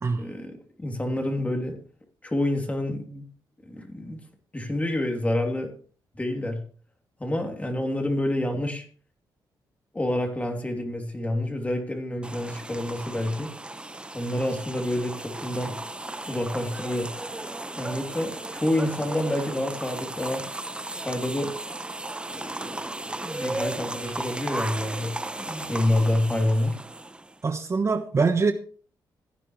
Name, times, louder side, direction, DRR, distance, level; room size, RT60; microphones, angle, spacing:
voice 1, 0.2-1.8 2.2-3.2 3.7-4.2 4.5-5.7 6.2-6.6 7.2-8.8 9.9-13.5 14.1-15.8 16.3-17.1 17.8-20.4 21.0-21.5 22.3-26.8, left 1 dB, 15° left, 3.0 m, -28 dB
sound 1, 12.2-27.4, right 2 dB, 15° right, 0.7 m, -35 dB
voice 2, 27.4-28.5, right 4 dB, 35° right, 1.2 m, -23 dB
16.0 x 9.9 x 3.2 m
cardioid pair, 95°, 8 cm